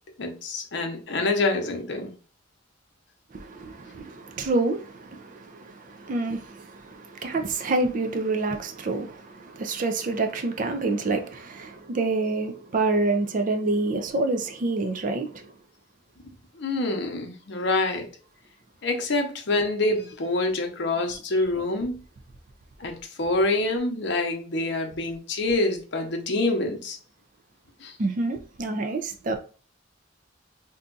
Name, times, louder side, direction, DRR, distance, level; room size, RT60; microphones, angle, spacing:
voice 1, 0.2-2.1 16.6-18.1 18.8-22.0 22.8-27.0 27.8-27.9, left 2 dB, 65° left, 0.7 m, -26 dB
voice 2, 3.3-15.5 28.0-29.4, right 3 dB, 45° right, 0.4 m, -27 dB
2.7 x 2.3 x 3.8 m
head